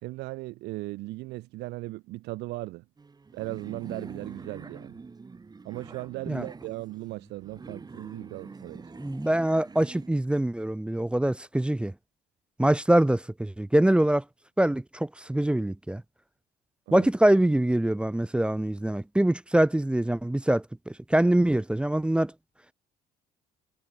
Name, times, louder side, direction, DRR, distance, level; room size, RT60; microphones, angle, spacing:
voice 1, 0.0-2.8 3.3-5.0 5.6-8.9 16.9-17.1, right 20 dB, 90° right, 3.7 m, -37 dB
sound 1, 3.0-10.1, right 4 dB, 25° right, 3.1 m, -45 dB
voice 2, 9.0-11.9 12.6-14.2 14.6-16.0 16.9-22.3, right 1 dB, 5° right, 0.5 m, -24 dB
cardioid pair, 110°, 17 cm